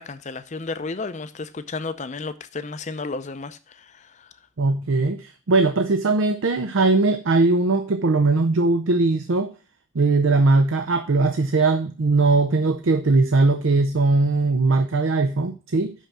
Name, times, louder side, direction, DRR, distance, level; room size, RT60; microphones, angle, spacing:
voice 1, 0.0-4.3, left 3 dB, 35° left, 0.5 m, -33 dB
voice 2, 4.6-9.5 9.9-15.9, right 3 dB, 75° right, 0.6 m, -20 dB
5.9 x 5.6 x 6.2 m
head